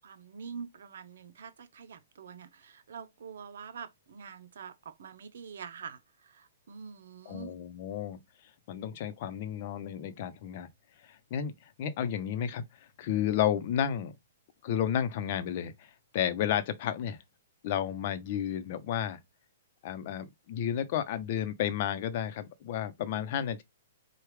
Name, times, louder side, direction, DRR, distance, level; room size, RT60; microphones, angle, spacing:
voice 1, 0.0-7.5, right 6 dB, 75° right, 0.8 m, -45 dB
voice 2, 7.3-8.2 8.7-10.7 11.1-11.5 11.8-12.6 13.0-14.1 14.6-15.9 16.1-17.2 17.6-19.2 19.8-23.6, left 10 dB, 45° left, 0.8 m, -32 dB
4.7 x 2.4 x 3.2 m
hypercardioid pair, 145°, 0 cm